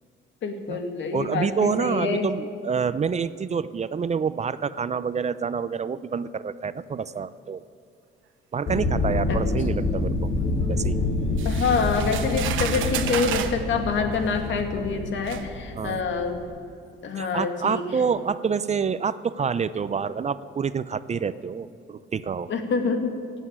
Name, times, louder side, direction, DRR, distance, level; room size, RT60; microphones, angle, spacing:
voice 1, 0.4-2.3 9.3-9.4 11.4-16.4 17.0-17.8 22.5-23.2, left 5 dB, 70° left, 6 dB, 2.0 m, -26 dB
voice 2, 1.1-7.6 8.5-10.3 10.7-11.0 15.8-16.0 17.2-22.5, right 6 dB, 35° right, 15 dB, 0.5 m, -27 dB
sound 1, 8.7-16.4, left 2 dB, 55° left, 3.5 m, -27 dB
sound 2, 11.4-13.6 14.6-14.7 15.3-15.4, right 11 dB, 85° right, 1.0 m, -31 dB
16.5 x 8.3 x 9.9 m, 2.3 s
cardioid pair, 90°, 20 cm